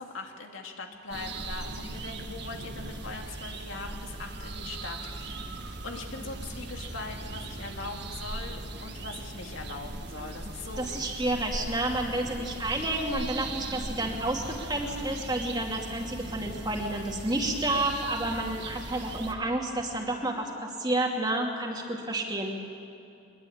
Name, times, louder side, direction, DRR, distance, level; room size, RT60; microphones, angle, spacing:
voice 1, 0.0-5.4 5.8-10.9, left 3 dB, 70° left, 3 dB, 2.4 m, -41 dB
sound 1, 1.1-19.3, right 2 dB, 55° right, 1.9 m, -39 dB
voice 2, 10.8-22.5, right 1 dB, 20° right, 1 dB, 2.5 m, -30 dB
22.5 x 21.5 x 8.7 m, 2.6 s
head